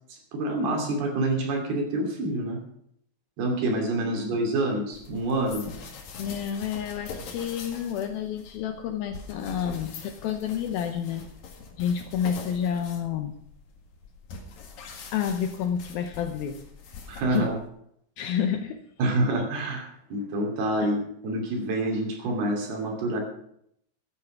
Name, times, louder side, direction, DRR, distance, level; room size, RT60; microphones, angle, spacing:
voice 1, 0.1-2.6 3.4-5.7 17.1-17.6 19.0-23.2, right 1 dB, 65° right, 2 dB, 4.5 m, -27 dB
sound 1, 4.9-17.7, left 5 dB, 60° left, 3.4 m, -43 dB
voice 2, 6.2-11.3 11.8-13.4 15.1-16.6 17.3-17.5 18.2-18.8 20.8-20.9, left 8 dB, 80° left, 7 dB, 2.2 m, -29 dB
14.0 x 9.3 x 6.1 m, 0.72 s
omnidirectional pair, 5.0 m